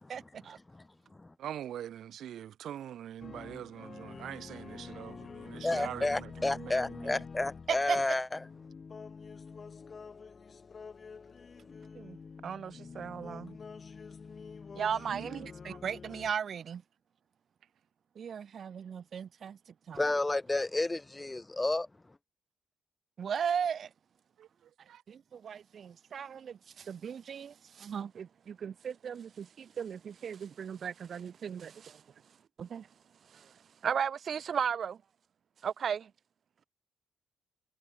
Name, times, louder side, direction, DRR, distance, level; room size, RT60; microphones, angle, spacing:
voice 1, 0.1-0.6 7.7-8.2 12.0-12.2 12.4-13.6 14.7-16.8 18.2-19.6 19.9-20.0 23.2-23.9 25.1-32.0 32.6-32.9 33.3-33.5 33.8-35.0 35.6-36.1, right 7 dB, 55° right, 1.9 m, -36 dB
voice 2, 1.4-7.2 15.1-15.8 24.4-24.5 24.9-25.0, right 10 dB, 70° right, 3.4 m, -43 dB
sound 1, 3.2-16.3, left 5 dB, 40° left, 4.2 m, -47 dB
voice 3, 5.6-8.4 19.9-21.9, left 2 dB, 15° left, 2.2 m, -31 dB
cardioid pair, 90°, 0 cm